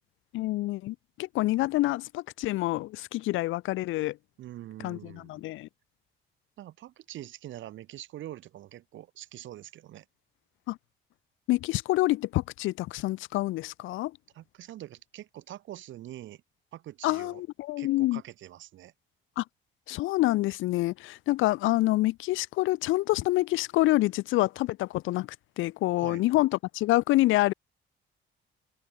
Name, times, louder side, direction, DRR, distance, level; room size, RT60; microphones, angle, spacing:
voice 1, 0.3-4.2 4.8-5.7 10.7-10.8 11.5-14.1 17.0-18.2 19.4-19.5 19.9-25.3 25.6-27.5, left 17 dB, 85° left, 0.5 m, -27 dB
voice 2, 4.4-5.4 6.6-10.1 14.3-16.4 16.7-17.4 17.8-18.9 26.0-26.2, right 13 dB, 75° right, 1.0 m, -44 dB
cardioid pair, 90°, 20 cm